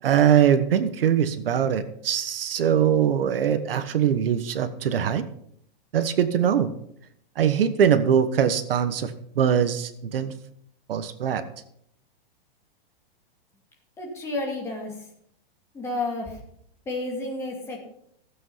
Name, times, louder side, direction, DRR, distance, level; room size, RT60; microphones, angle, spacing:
voice 1, 0.0-5.2 5.9-6.7 7.4-10.3 10.9-11.4, right 8 dB, 65° right, 11 dB, 1.2 m, -22 dB
voice 2, 14.0-14.9 15.7-16.4 16.9-17.8, left 2 dB, 10° left, -2 dB, 2.5 m, -31 dB
16.0 x 8.1 x 5.7 m, 0.69 s
supercardioid pair, 175°, 30 cm